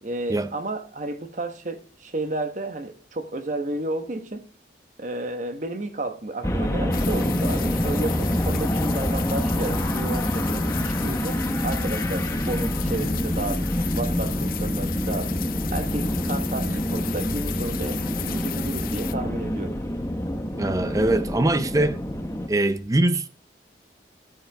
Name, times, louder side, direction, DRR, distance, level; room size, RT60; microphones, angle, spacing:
voice 1, 0.0-4.5 5.0-13.7 14.0-15.4 15.7-19.8 21.6-21.9, right 2 dB, 45° right, 1.2 m, -32 dB
sound 1, 6.4-22.5, equal, 15° left, 1.0 m, -26 dB
sound 2, 6.9-19.1, left 13 dB, 50° left, 0.5 m, -36 dB
voice 2, 20.6-22.0 22.5-23.3, right 1 dB, 20° right, 0.5 m, -22 dB
13.5 x 8.8 x 3.5 m
head